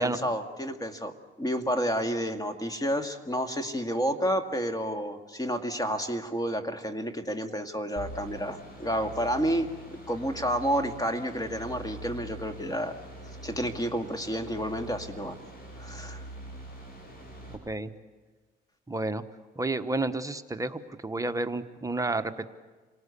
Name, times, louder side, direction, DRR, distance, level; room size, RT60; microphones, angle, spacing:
voice 1, 0.0-13.0 13.4-15.4 15.8-16.2, equal, 20° left, 8 dB, 2.1 m, -30 dB
sound 1, 8.0-17.6, right 1 dB, 50° left, 7.3 m, -44 dB
voice 2, 17.5-17.9 18.9-19.2 19.6-22.5, right 2 dB, 15° right, 8 dB, 1.1 m, -31 dB
27.0 x 19.0 x 8.4 m, 1.4 s
cardioid pair, 90°, 20 cm